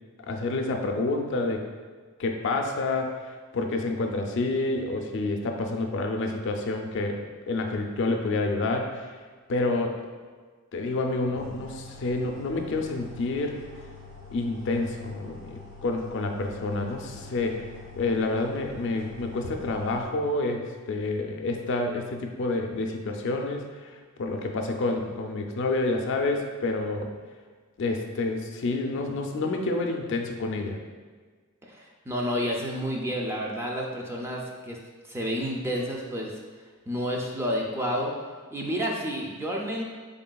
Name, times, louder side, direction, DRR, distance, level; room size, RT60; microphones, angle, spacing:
voice 1, 0.3-1.6 2.2-9.1 9.5-10.0 10.7-13.6 14.3-17.7 18.0-27.1 27.8-30.8, left 2 dB, 60° left, 3 dB, 0.4 m, -28 dB
sound 1, 11.3-20.1, left 3 dB, 85° right, 1.4 m, -45 dB
voice 2, 31.7-34.8 35.0-36.4 36.9-38.1 38.5-39.8, equal, 10° right, -1 dB, 0.3 m, -30 dB
3.9 x 3.6 x 2.3 m, 1.5 s
head